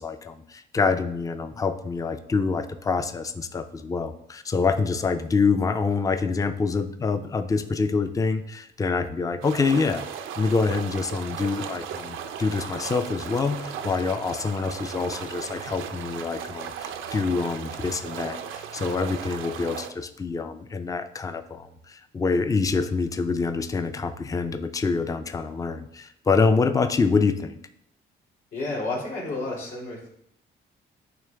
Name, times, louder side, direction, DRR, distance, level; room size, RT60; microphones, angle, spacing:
voice 1, 0.0-10.0 10.4-27.6, left 4 dB, 15° left, 10 dB, 0.4 m, -26 dB
sound 1, 9.4-19.9, right 8 dB, 85° right, 0.5 m, -36 dB
voice 2, 28.5-30.1, left 2 dB, 75° left, -5 dB, 2.5 m, -31 dB
9.1 x 3.1 x 3.4 m, 0.75 s
cardioid pair, 90°, 20 cm